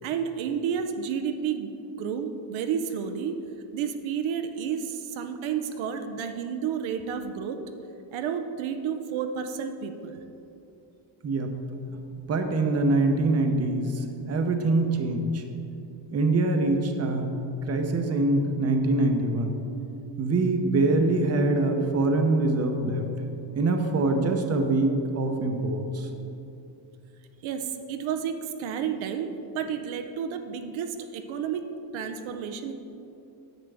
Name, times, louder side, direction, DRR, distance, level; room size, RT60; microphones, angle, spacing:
voice 1, 0.0-1.7 2.0-3.4 3.7-7.6 8.1-10.2 27.4-32.7, right 7 dB, 80° right, 7 dB, 0.7 m, -31 dB
voice 2, 11.2-11.6 12.3-15.4 16.1-17.3 17.7-19.5 20.2-23.0 23.5-26.1, right 2 dB, 35° right, 5 dB, 0.7 m, -24 dB
10.0 x 6.6 x 3.4 m, 2.8 s
cardioid pair, 130°, 46 cm